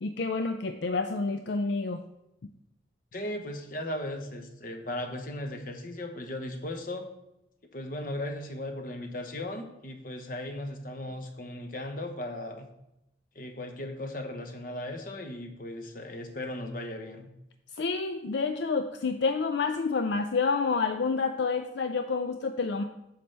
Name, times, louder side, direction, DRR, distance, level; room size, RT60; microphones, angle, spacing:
voice 1, 0.0-2.0 17.8-22.8, left 4 dB, 70° left, 7 dB, 0.4 m, -28 dB
voice 2, 3.1-7.1 7.7-12.7 13.3-17.3, left 1 dB, 50° left, 5 dB, 1.0 m, -37 dB
9.4 x 6.6 x 3.3 m, 0.87 s
head